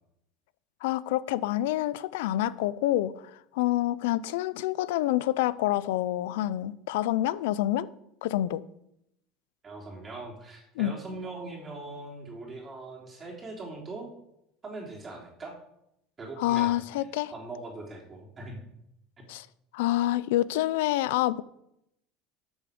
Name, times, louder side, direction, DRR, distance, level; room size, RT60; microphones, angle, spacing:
voice 1, 0.8-3.1 3.5-7.9 8.2-8.6 10.8-10.9 16.4-17.3 19.3-19.5 19.7-21.4, left 14 dB, 85° left, 0.5 m, -27 dB
voice 2, 9.6-14.1 14.6-15.6 16.2-17.0 17.3-18.6 19.2-19.3, right 2 dB, 25° right, 3.3 m, -41 dB
13.0 x 7.2 x 5.2 m
supercardioid pair, 125°, 0 cm